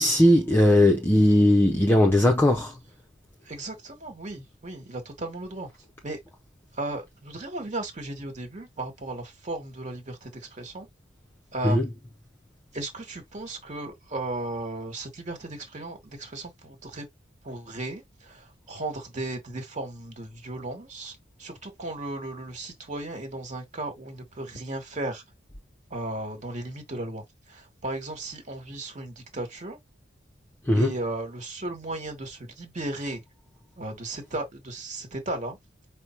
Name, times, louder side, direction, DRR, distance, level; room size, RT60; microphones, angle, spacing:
voice 1, 0.0-2.8 11.6-11.9 30.7-30.9, left 1 dB, 10° left, 0.6 m, -19 dB
voice 2, 3.4-5.7 6.0-6.2 6.7-10.9 11.5-11.8 12.7-17.0 17.4-25.2 25.9-29.8 30.7-33.2 33.8-35.6, right 2 dB, 40° right, 1.5 m, -35 dB
5.2 x 2.0 x 4.4 m
head